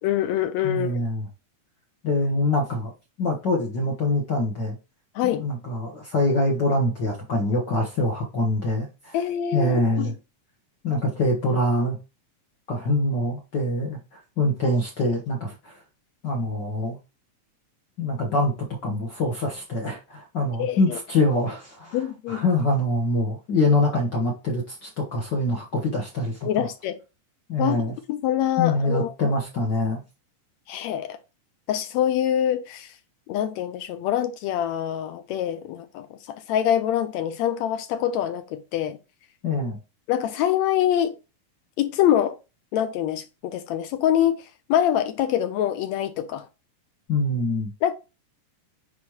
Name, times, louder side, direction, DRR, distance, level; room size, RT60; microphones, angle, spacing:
voice 1, 0.0-1.0 5.1-5.5 9.1-10.1 20.6-21.0 21.9-22.4 26.4-27.0 27.6-27.8 28.1-29.3 30.7-31.2 31.7-32.9 33.3-39.0 40.1-41.2 41.8-42.4 42.7-46.5 47.8-47.9, left 10 dB, 80° left, 1.7 m, -25 dB
voice 2, 0.6-1.3 2.0-2.9 3.2-4.8 5.4-9.2 9.5-10.1 10.8-12.0 12.7-15.8 16.2-17.0 18.0-18.5 18.8-22.0 22.3-26.7 27.5-27.9 28.6-30.0 39.4-39.8 47.1-47.7, left 1 dB, 55° left, 1.3 m, -24 dB
9.6 x 4.3 x 2.9 m
omnidirectional pair, 3.6 m